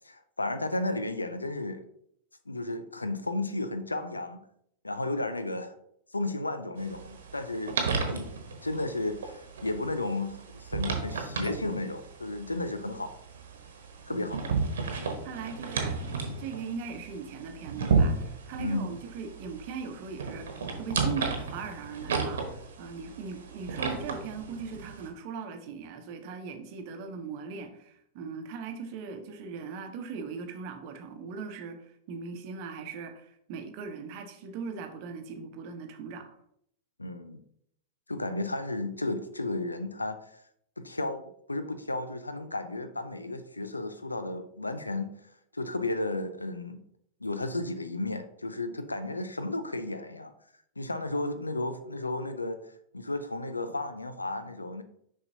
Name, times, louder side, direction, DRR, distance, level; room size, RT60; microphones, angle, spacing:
voice 1, 0.0-1.8 2.5-4.4 4.8-5.7 6.1-7.8 8.1-13.1 14.1-14.4 18.6-19.0 37.0-37.4 38.1-40.3 40.8-41.2 41.5-45.1 45.5-46.8 47.2-50.3 50.8-52.6 52.9-54.8, left 2 dB, 80° left, 0.5 m, -33 dB
sound 1, 6.8-25.1, right 4 dB, 65° right, 1.1 m, -33 dB
voice 2, 14.1-14.5 15.2-36.4, right 5 dB, 45° right, 0.9 m, -39 dB
6.7 x 5.5 x 2.8 m
figure-of-eight pair, 90°, 0 cm